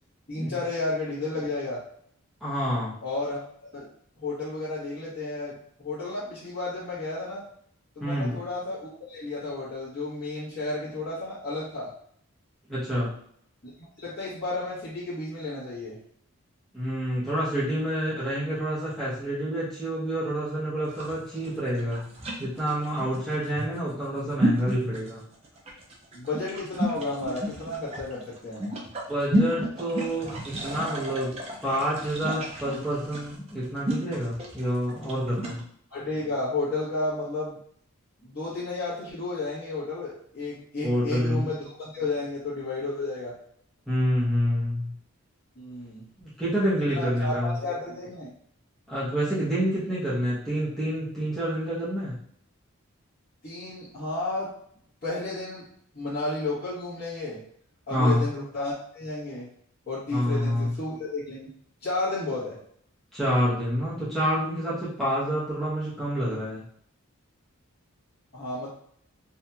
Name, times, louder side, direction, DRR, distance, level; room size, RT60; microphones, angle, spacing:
voice 1, 0.3-1.8 3.0-3.4 3.7-3.9 4.2-7.4 7.9-11.9 13.6-16.0 26.1-28.7 35.9-37.6 38.2-43.3 45.5-46.1 46.9-48.3 53.4-54.5 55.0-55.7 55.9-57.4 57.9-59.5 59.9-61.5 61.8-62.6 68.3-68.7, left 2 dB, 45° left, -13 dB, 1.1 m, -32 dB
voice 2, 2.4-2.9 8.0-8.4 12.7-13.1 16.7-22.1 22.4-25.2 29.1-31.3 31.6-35.6 40.8-41.5 43.9-44.9 46.2-47.6 48.9-52.2 57.9-58.3 60.1-60.7 63.1-66.6, equal, ahead, -12 dB, 0.7 m, -28 dB
sound 1, 20.8-35.6, right 1 dB, 30° right, 0.4 m, -32 dB
2.8 x 2.6 x 2.2 m, 0.64 s
head